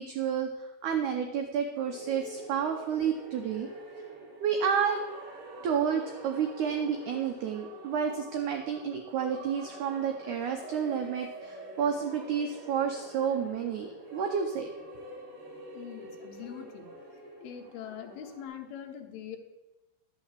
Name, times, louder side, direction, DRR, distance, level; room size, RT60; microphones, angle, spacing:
voice 1, 0.0-3.7 4.4-5.0 5.6-14.7, right 7 dB, 85° right, 4 dB, 1.7 m, -30 dB
sound 1, 1.8-18.4, right 2 dB, 35° right, 3.5 m, -46 dB
voice 2, 15.7-16.9 17.4-19.4, left 9 dB, 75° left, 3 dB, 2.9 m, -42 dB
11.5 x 5.8 x 7.3 m, 1.0 s
omnidirectional pair, 4.6 m